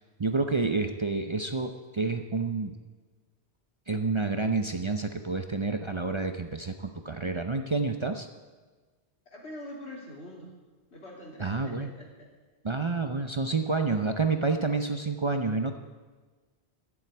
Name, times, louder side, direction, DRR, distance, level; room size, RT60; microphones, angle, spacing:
voice 1, 0.2-2.8 3.9-8.3 11.4-11.9 12.6-15.8, right 3 dB, 35° right, 6 dB, 0.6 m, -29 dB
voice 2, 9.2-10.5 10.9-12.3, left 1 dB, 85° left, -2 dB, 3.3 m, -44 dB
11.5 x 7.1 x 9.2 m, 1.3 s
omnidirectional pair, 1.1 m